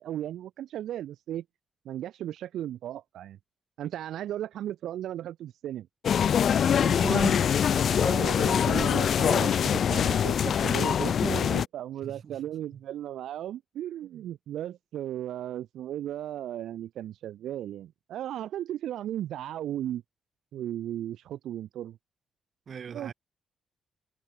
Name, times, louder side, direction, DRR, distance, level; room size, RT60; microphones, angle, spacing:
voice 1, 0.0-1.4 1.9-3.4 3.8-5.9 8.0-20.0 20.5-22.0 22.9-23.1, right 12 dB, 80° right, 0.3 m, -36 dB
sound 1, 6.0-11.7, left 8 dB, 45° left, 0.3 m, -24 dB
voice 2, 6.8-7.5 12.0-12.4 12.7-12.8 22.7-23.1, right 7 dB, 40° right, 1.1 m, -36 dB
wide cardioid pair, 175°, 0 cm